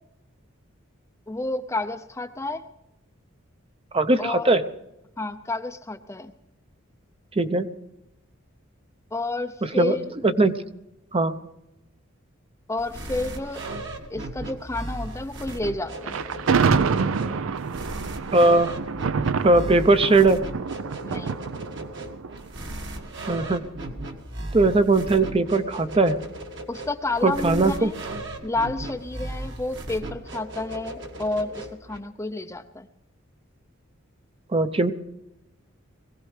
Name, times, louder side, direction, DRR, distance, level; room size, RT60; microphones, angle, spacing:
voice 1, 1.3-2.6 4.2-4.6 5.2-6.3 9.1-10.1 12.7-13.7 14.1-16.2 21.0-21.3 26.7-27.9 28.4-32.9, left 2 dB, 15° left, 8 dB, 0.5 m, -30 dB
voice 2, 3.9-4.6 7.4-7.7 9.6-10.0 10.2-10.5 11.1-11.4 18.3-18.7 19.4-20.4 23.3-23.6 24.5-26.2 27.2-27.9 34.5-34.9, right 2 dB, 25° right, 10 dB, 0.6 m, -19 dB
sound 1, 12.8-32.0, right 1 dB, 60° right, 1.8 m, -37 dB
Thunder, 16.0-23.2, right 5 dB, 80° right, 0.5 m, -27 dB
22.0 x 16.5 x 3.3 m, 0.90 s
head